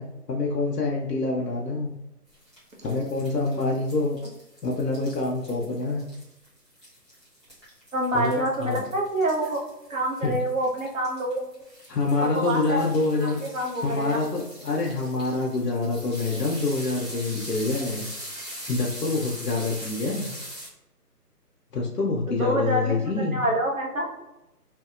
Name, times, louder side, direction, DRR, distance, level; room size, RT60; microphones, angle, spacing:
voice 1, 0.0-2.0 2.8-4.2 4.6-6.1 8.1-8.3 8.6-8.9 10.2-10.4 11.9-13.4 13.8-18.1 18.7-20.3 21.7-23.4, left 3 dB, 80° left, -2 dB, 0.8 m, -26 dB
sound 1, 2.3-20.7, equal, 20° right, 0.7 m, -42 dB
voice 2, 7.9-9.6 9.9-11.5 12.2-12.9 13.4-14.2 22.3-24.1, right 1 dB, 55° right, -1 dB, 0.8 m, -26 dB
2.8 x 2.7 x 2.4 m, 0.93 s
figure-of-eight pair, 155°, 48 cm